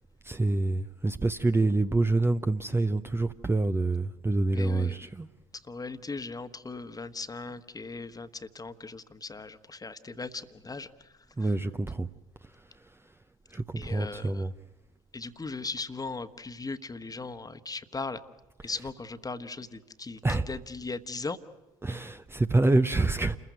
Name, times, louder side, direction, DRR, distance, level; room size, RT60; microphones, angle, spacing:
voice 1, 0.2-5.3 11.4-12.1 13.5-14.5 20.2-20.5 21.8-23.4, right 2 dB, 15° right, 0.7 m, -26 dB
voice 2, 4.5-5.1 5.5-11.5 13.8-14.5 15.1-18.2 18.6-21.4, left 3 dB, 20° left, 1.3 m, -38 dB
28.5 x 15.0 x 9.4 m
hypercardioid pair, 55°, 17 cm